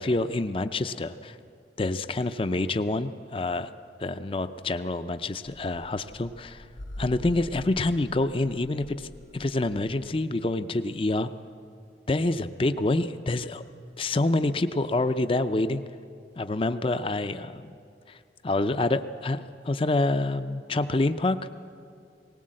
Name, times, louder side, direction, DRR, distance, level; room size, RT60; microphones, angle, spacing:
voice 1, 0.0-1.4 1.8-3.7 4.0-6.7 7.0-11.3 12.1-13.6 14.0-15.8 16.4-17.7 18.1-18.2 18.4-21.4, left 2 dB, 30° left, 11 dB, 0.5 m, -27 dB
sound 1, 5.5-10.1, left 1 dB, 85° left, 0.8 m, -44 dB
19.0 x 19.0 x 7.6 m, 2.4 s
head